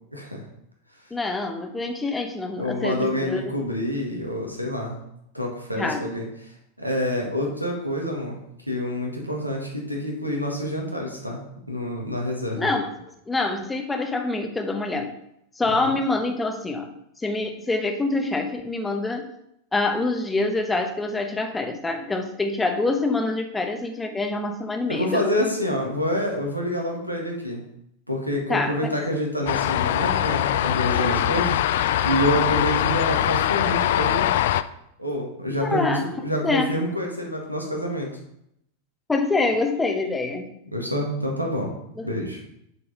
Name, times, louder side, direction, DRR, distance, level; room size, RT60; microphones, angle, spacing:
voice 1, 0.1-0.4 2.6-5.0 5.3-8.4 8.7-12.7 15.8-15.9 24.9-27.6 28.1-34.3 35.0-38.1 40.7-41.7 42.0-42.4, equal, 90° right, 0 dB, 1.6 m, -27 dB
voice 2, 1.1-3.4 5.8-6.0 12.6-12.9 13.3-15.2 15.6-19.3 19.7-25.5 28.5-28.9 35.6-36.1 36.4-36.8 39.1-40.5 42.0-42.1, left 3 dB, 10° left, 5 dB, 1.0 m, -26 dB
sound 1, 29.5-34.6, left 12 dB, 55° left, 0.3 m, -22 dB
6.9 x 4.8 x 5.1 m, 0.77 s
figure-of-eight pair, 90°, 0 cm